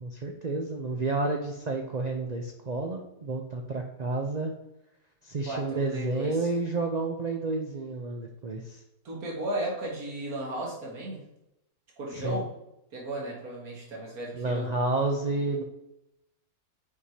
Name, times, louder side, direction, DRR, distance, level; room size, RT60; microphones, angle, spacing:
voice 1, 0.0-4.5 5.2-8.8 12.2-12.4 14.3-15.6, right 3 dB, 90° right, 2 dB, 0.3 m, -30 dB
voice 2, 5.4-6.5 9.0-11.2 12.0-12.5 12.9-14.7, right 1 dB, 70° right, -3 dB, 2.1 m, -35 dB
8.5 x 4.9 x 2.8 m, 0.87 s
omnidirectional pair, 1.6 m